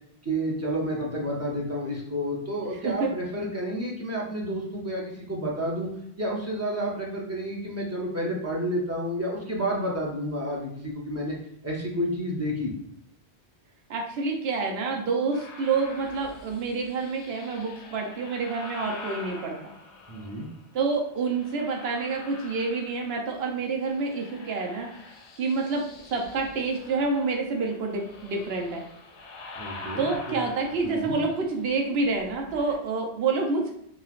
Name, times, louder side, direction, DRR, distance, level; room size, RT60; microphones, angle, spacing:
voice 1, 0.2-5.9 6.2-11.3 11.6-12.7 20.1-20.5 29.6-30.5 30.8-31.2, equal, 20° right, -3 dB, 0.5 m, -30 dB
voice 2, 13.9-19.7 20.7-24.9 25.4-25.9 26.1-28.8 30.0-33.7, right 4 dB, 75° right, 1 dB, 0.8 m, -28 dB
sound 1, 15.3-20.6 21.2-23.4 23.7-32.8, left 3 dB, 85° left, 0.8 m, -45 dB
3.1 x 2.3 x 2.4 m, 0.70 s
omnidirectional pair, 1.1 m